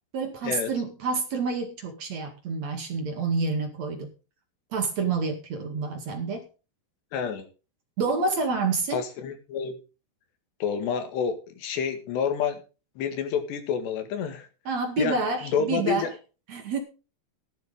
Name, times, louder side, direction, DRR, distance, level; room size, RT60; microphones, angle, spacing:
voice 1, 0.1-4.1 4.7-6.5 8.0-9.0 14.6-16.1 16.5-16.8, right 4 dB, 50° right, 2.7 m, -28 dB
voice 2, 7.1-7.5 8.9-9.8 10.6-12.6 13.0-14.5 15.0-16.1, left 6 dB, 90° left, 4.0 m, -29 dB
14.0 x 12.0 x 3.7 m
omnidirectional pair, 4.8 m